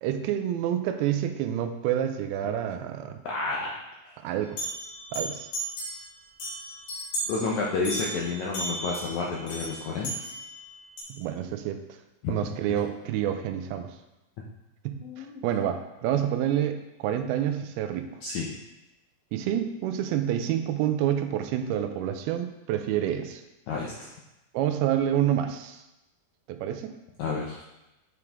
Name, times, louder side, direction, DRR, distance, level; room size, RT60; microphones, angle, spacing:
voice 1, 0.0-3.2 4.2-4.6 5.1-5.5 11.1-11.8 12.3-14.0 14.9-18.1 19.3-23.4 24.5-25.8 26.5-26.9, right 10 dB, 90° right, 7 dB, 2.5 m, -28 dB
voice 2, 3.3-3.7 7.3-10.1 12.2-12.4 15.0-15.4 18.2-18.5 23.7-24.1 27.2-27.6, left 4 dB, 85° left, -2 dB, 1.6 m, -30 dB
sound 1, 4.6-6.0 6.4-7.4 7.9-11.0, right 1 dB, 65° left, 3.8 m, -35 dB
9.2 x 4.9 x 3.5 m, 0.97 s
omnidirectional pair, 4.4 m